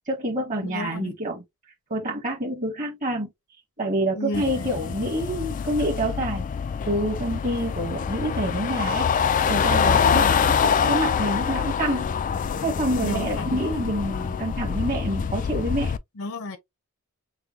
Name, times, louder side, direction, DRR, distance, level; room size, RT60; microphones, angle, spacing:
voice 1, 0.1-1.4 1.9-3.3 3.8-6.4 6.9-9.1 9.5-10.2 10.6-12.1 12.6-15.9, right 1 dB, 35° right, 1.2 m, -27 dB
voice 2, 0.6-1.2 4.1-4.7 10.1-10.5 13.0-13.5 16.2-16.6, left 2 dB, 65° left, 0.8 m, -32 dB
sound 1, 4.3-16.0, left 6 dB, 35° left, 0.3 m, -25 dB
5.6 x 2.2 x 2.9 m
head